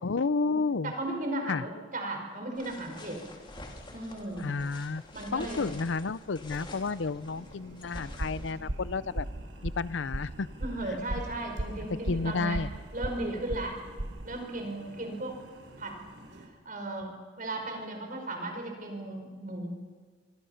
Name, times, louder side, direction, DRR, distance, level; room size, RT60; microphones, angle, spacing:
voice 1, 0.0-0.9 1.5-1.6 4.4-5.0 5.3-9.3 9.6-10.5 10.9-11.0 12.1-12.7, left 4 dB, 75° left, 18 dB, 0.6 m, -31 dB
voice 2, 0.8-3.2 3.9-4.5 5.1-5.7 10.6-12.6 12.9-13.8 14.2-15.4 15.8-16.0 16.7-19.8, right 2 dB, 45° right, 3 dB, 5.3 m, -36 dB
sound 1, 2.6-8.5, left 1 dB, 25° left, 2.9 m, -47 dB
sound 2, 6.4-16.5, right 1 dB, 85° right, 4.8 m, -52 dB
sound 3, 7.9-14.3, right 1 dB, 60° right, 1.2 m, -36 dB
26.0 x 24.0 x 5.8 m, 1.5 s
head